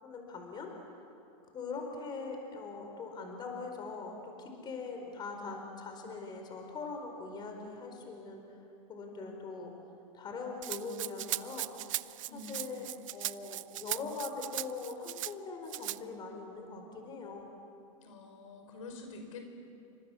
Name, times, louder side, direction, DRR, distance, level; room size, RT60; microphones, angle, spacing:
voice 1, 0.0-0.7 1.4-8.6 8.9-9.7 10.1-11.7 12.3-12.8 13.1-17.5, left 4 dB, 25° left, 3 dB, 4.6 m, -42 dB
Rattle (instrument), 10.6-15.3 15.7-16.0, right 15 dB, 75° right, 0.7 m, -38 dB
voice 2, 12.3-12.9 18.0-19.4, left 3 dB, 80° left, 4 dB, 5.3 m, -47 dB
29.5 x 26.0 x 7.3 m, 2.7 s
supercardioid pair, 135°, 17 cm